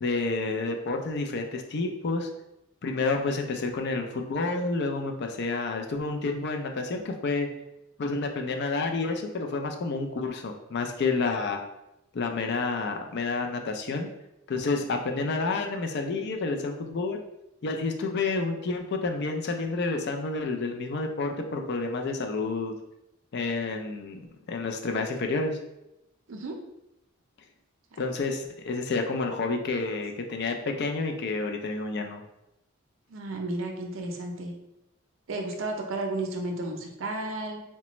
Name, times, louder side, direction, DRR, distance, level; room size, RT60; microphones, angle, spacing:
voice 1, 0.0-2.3 2.8-7.5 8.0-11.6 12.1-14.1 14.5-17.2 17.6-22.7 23.3-24.2 24.5-25.6 28.0-32.2, left 3 dB, 55° left, 4 dB, 0.4 m, -29 dB
voice 2, 33.1-34.5 35.3-37.6, right 2 dB, 65° right, 3 dB, 0.5 m, -33 dB
4.0 x 2.2 x 2.9 m, 0.87 s
head